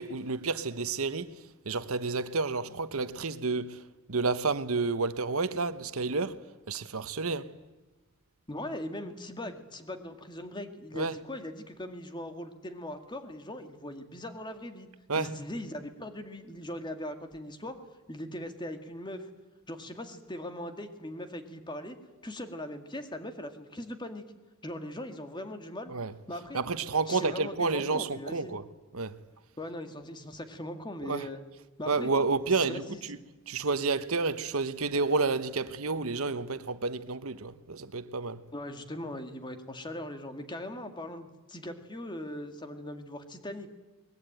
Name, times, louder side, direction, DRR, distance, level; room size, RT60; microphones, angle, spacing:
voice 1, 0.0-7.5 10.9-11.1 15.1-15.3 25.9-26.1 26.5-28.7 28.9-29.2 31.0-31.3 31.9-32.8 33.1-33.2 33.5-38.4, right 4 dB, 75° right, 1.1 m, -30 dB
voice 2, 8.5-14.9 15.2-17.8 18.1-19.3 19.7-22.0 22.2-24.2 24.6-25.9 26.3-26.6 27.1-28.5 29.6-31.4 31.8-33.0 38.5-43.7, left 1 dB, 20° left, 2.0 m, -40 dB
22.5 x 21.0 x 9.1 m
head